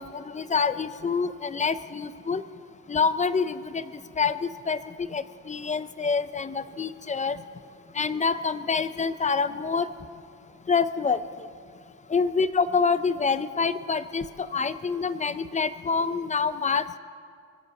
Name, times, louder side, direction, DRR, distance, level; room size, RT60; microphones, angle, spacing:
voice 1, 0.0-2.4 2.9-3.8 4.2-4.8 5.1-7.4 8.0-9.9 10.7-11.2 12.1-17.0, left 5 dB, 25° left, 13 dB, 0.6 m, -26 dB
23.0 x 8.0 x 7.1 m, 2.3 s
cardioid pair, 90°, 30 cm